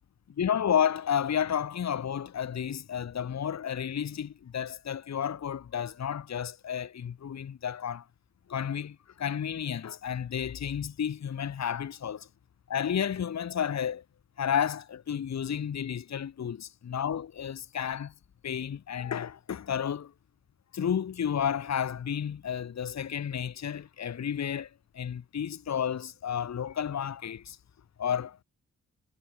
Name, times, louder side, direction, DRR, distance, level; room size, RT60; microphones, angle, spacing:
voice 1, 0.4-8.1 8.5-12.3 12.7-14.0 14.4-18.1 18.4-20.1 20.7-27.6 28.0-28.4, left 8 dB, 60° left, 1.0 m, -31 dB
cardioid pair, 70°, 31 cm